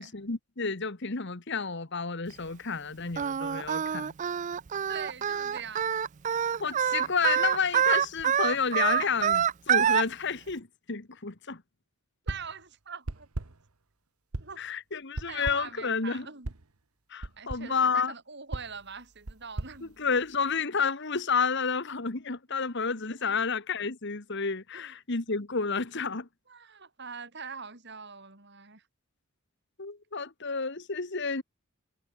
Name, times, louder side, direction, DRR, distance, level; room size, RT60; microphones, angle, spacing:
voice 1, 0.0-4.1 6.6-11.6 14.6-16.3 17.1-18.1 19.8-26.3 29.8-31.4, left 5 dB, 55° left, 1.5 m, -30 dB
Singing, 3.2-10.0, right 8 dB, 35° right, 0.3 m, -26 dB
voice 2, 4.9-5.9 12.3-13.3 14.4-14.6 15.3-16.5 17.4-19.9 23.2-23.4 24.7-24.9 26.5-28.8, right 5 dB, 50° right, 5.4 m, -43 dB
sound 1, 12.3-12.6 13.1-13.7 14.3-14.7 15.2-15.8 16.4-16.7 17.2-17.8 18.5-20.6, right 2 dB, 90° right, 1.4 m, -39 dB
head